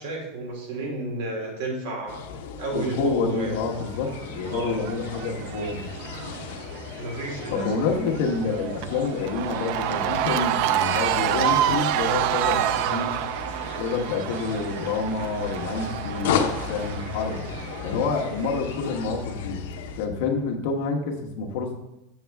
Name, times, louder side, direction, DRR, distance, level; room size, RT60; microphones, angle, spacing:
voice 1, 0.0-2.3 2.6-3.6 4.5-4.8 7.0-7.7, right 2 dB, 70° right, -1 dB, 2.8 m, -32 dB
sound 1, 2.1-20.1, left 7 dB, 70° left, 0.8 m, -35 dB
voice 2, 2.7-5.9 7.5-13.1 13.8-17.4 17.8-19.6 20.0-21.7, left 4 dB, 55° left, 1 dB, 1.3 m, -28 dB
Cheering / Crowd, 3.7-19.0, right 11 dB, 45° right, 0.3 m, -29 dB
7.4 x 7.1 x 3.5 m, 0.91 s
supercardioid pair, 175°, 0 cm